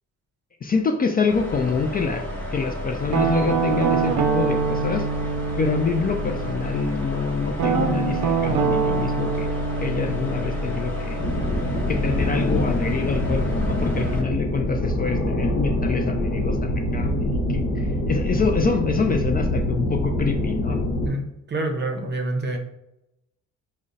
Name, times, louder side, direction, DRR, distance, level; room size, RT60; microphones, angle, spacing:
voice 1, 0.6-2.2 2.5-5.1 5.6-9.5 9.8-11.2 11.9-20.8, left 4 dB, 30° left, 3 dB, 0.4 m, -26 dB
sound 1, 1.3-14.2, left 1 dB, 5° left, 1.1 m, -31 dB
Guitar, 3.1-6.9 7.6-12.3, right 5 dB, 80° right, 0.5 m, -25 dB
sound 2, 11.2-21.1, left 1 dB, 65° left, 0.9 m, -25 dB
voice 2, 21.0-22.6, right 2 dB, 35° right, 4 dB, 0.7 m, -27 dB
3.6 x 2.1 x 3.9 m, 0.87 s
cardioid pair, 90°, 30 cm